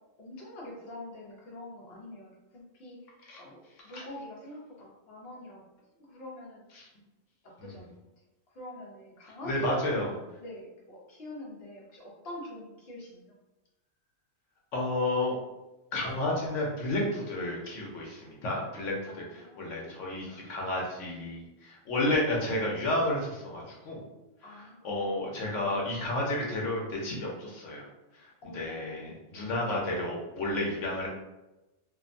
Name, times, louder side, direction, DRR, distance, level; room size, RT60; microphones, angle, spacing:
voice 1, 0.2-6.9 7.4-7.9 8.5-9.9 10.4-13.4 19.1-20.0 24.4-25.5 28.4-29.5, left 1 dB, 60° left, -4 dB, 0.9 m, -46 dB
voice 2, 9.4-10.1 14.7-15.4 15.9-24.0 24.8-27.8 28.1-31.1, left 1 dB, 85° left, -2 dB, 1.1 m, -31 dB
2.6 x 2.1 x 2.5 m, 1.0 s
omnidirectional pair, 1.3 m